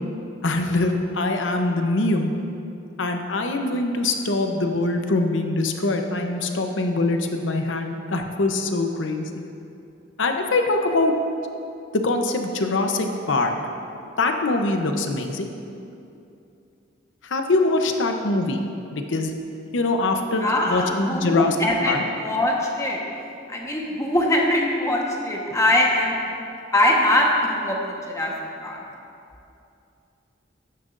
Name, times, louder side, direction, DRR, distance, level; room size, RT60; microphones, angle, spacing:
voice 1, 0.4-2.3 3.0-9.3 10.2-11.2 11.9-13.6 14.2-15.5 17.2-18.6 18.9-19.3 19.7-21.5 21.8-22.0, left 2 dB, 90° left, 5 dB, 0.8 m, -23 dB
voice 2, 20.4-23.0 23.5-26.3 26.7-28.3 28.6-28.8, left 1 dB, 15° left, -1 dB, 1.2 m, -22 dB
12.5 x 10.5 x 2.6 m, 2.6 s
head